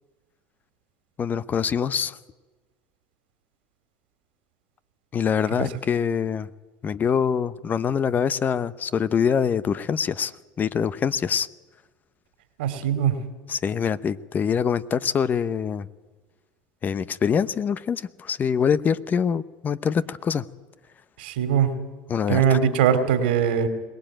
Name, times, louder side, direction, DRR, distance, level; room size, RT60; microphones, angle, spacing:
voice 1, 1.2-2.2 5.1-6.5 6.8-10.3 10.6-11.5 13.5-15.9 16.8-20.4 22.1-22.6, left 7 dB, 35° left, 0.8 m, -24 dB
voice 2, 12.6-13.2 21.2-21.7 22.3-23.7, right 8 dB, 80° right, 2.5 m, -21 dB
22.0 x 18.5 x 9.1 m
hypercardioid pair, 90°, 5 cm